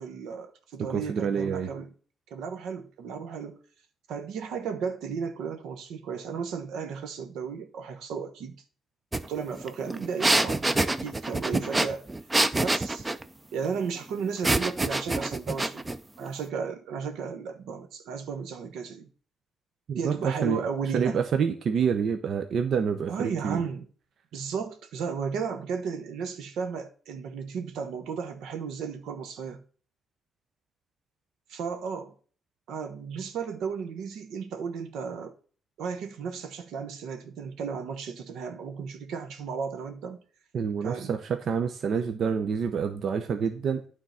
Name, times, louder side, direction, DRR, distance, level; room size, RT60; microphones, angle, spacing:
voice 1, 0.0-1.9 2.3-3.6 4.1-8.6 9.2-12.0 12.5-13.1 13.5-19.1 20.0-21.2 23.1-23.9 24.3-29.6 31.5-32.1 32.7-35.3 35.8-40.2 40.8-41.1, right 6 dB, 80° right, 1.1 m, -34 dB
voice 2, 0.9-1.7 19.9-20.6 20.9-23.6 40.5-43.8, right 6 dB, 60° right, 0.8 m, -27 dB
sound 1, 9.1-9.2 9.5-13.2 14.4-16.0, right 2 dB, 20° right, 0.6 m, -26 dB
9.2 x 3.8 x 5.6 m
cardioid pair, 90°, 0 cm